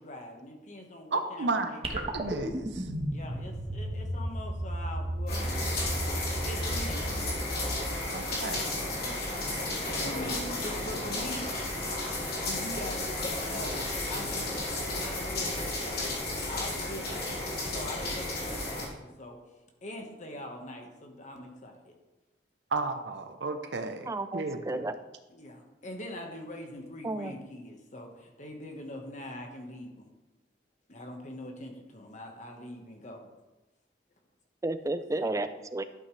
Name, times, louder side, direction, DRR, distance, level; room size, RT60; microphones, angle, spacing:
voice 1, 0.0-2.1 3.1-5.9 6.3-7.1 9.0-9.3 9.6-11.8 12.4-13.8 14.1-19.4 19.8-21.9 25.3-30.1 30.9-33.3 35.3-35.4, left 1 dB, 45° left, 3 dB, 1.5 m, -43 dB
voice 2, 1.1-2.8 8.1-8.7 22.7-24.8, right 3 dB, 75° right, 7 dB, 0.8 m, -33 dB
sound 1, 1.8-8.4, right 1 dB, 35° right, 1.4 m, -34 dB
sound 2, 5.3-18.9, left 2 dB, 60° left, 3.5 m, -33 dB
sound 3, 9.4-13.1 13.5-13.6, equal, 75° left, 1.6 m, -44 dB
voice 3, 24.1-24.9 27.0-27.3 34.6-35.8, right 2 dB, 20° right, 11 dB, 0.5 m, -32 dB
12.0 x 8.3 x 3.3 m, 1.1 s
head